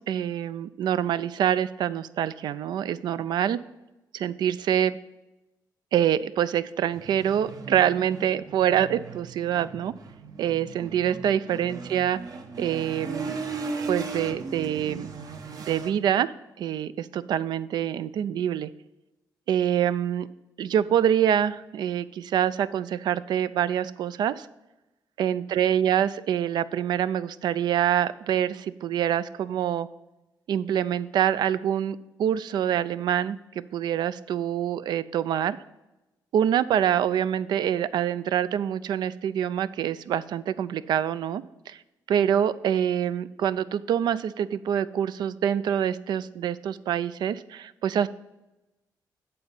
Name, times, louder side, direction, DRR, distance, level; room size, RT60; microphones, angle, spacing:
voice 1, 0.0-3.6 4.1-5.0 5.9-9.9 10.4-12.2 12.6-13.4 13.9-15.1 15.6-16.3 16.6-18.7 19.5-20.3 20.6-24.5 25.2-29.9 30.5-35.6 36.3-41.8 42.1-48.1, right 10 dB, 70° right, 15 dB, 0.4 m, -25 dB
sound 1, 6.9-15.9, right 4 dB, 55° right, 0.9 m, -37 dB
8.4 x 4.0 x 7.0 m, 1.0 s
cardioid pair, 110°, 8 cm